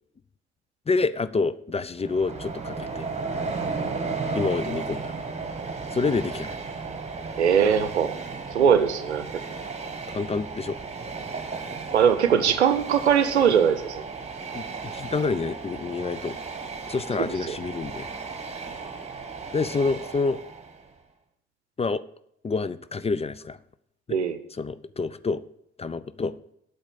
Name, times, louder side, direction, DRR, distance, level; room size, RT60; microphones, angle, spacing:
voice 1, 0.9-3.1 4.3-5.1 5.9-6.5 10.1-10.8 14.5-16.4 16.9-18.1 19.5-20.4 21.8-22.0 22.4-23.6 24.6-25.4 25.8-26.4, left 4 dB, 20° left, 16 dB, 0.5 m, -27 dB
Train, 2.0-20.9, right 4 dB, 20° right, 1.7 m, -35 dB
voice 2, 7.4-8.1 8.5-9.4 11.9-14.0 17.2-17.6 24.1-24.4, right 8 dB, 80° right, 11 dB, 0.7 m, -21 dB
8.8 x 6.9 x 7.0 m, 0.73 s
figure-of-eight pair, 45°, 33 cm